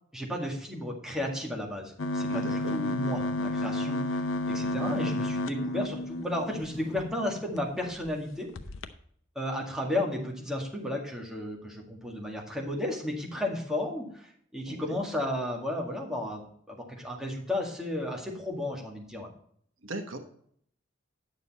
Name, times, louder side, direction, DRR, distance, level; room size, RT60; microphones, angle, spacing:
voice 1, 0.1-4.0 4.5-8.5 9.4-19.3, left 1 dB, 5° right, -1 dB, 1.9 m, -33 dB
sound 1, 2.0-7.0 7.6-7.7 7.9-8.1 8.5-8.9, left 1 dB, 75° left, 0.7 m, -31 dB
sound 2, 2.3-8.4, left 3 dB, 35° left, 1.1 m, -44 dB
voice 2, 2.3-2.8 14.7-15.0 19.8-20.2, right 2 dB, 75° right, 6 dB, 1.2 m, -38 dB
9.7 x 7.0 x 4.1 m, 0.65 s
head